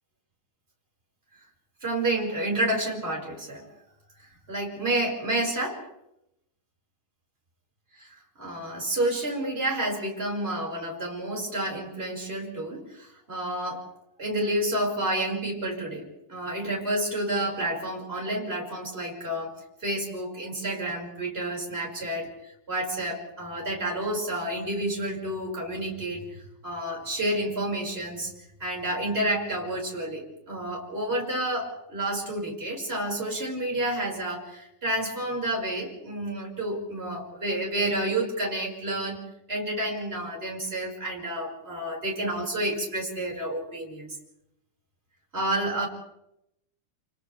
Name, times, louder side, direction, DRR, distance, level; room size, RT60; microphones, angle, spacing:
voice 1, 1.8-3.7 4.5-5.9 8.0-8.1 8.4-13.8 14.2-19.5 19.8-22.3 22.7-28.3 28.6-44.1 45.3-45.9, right 1 dB, 15° right, -2 dB, 5.7 m, -30 dB
29.5 x 29.5 x 3.5 m, 0.82 s
omnidirectional pair, 4.4 m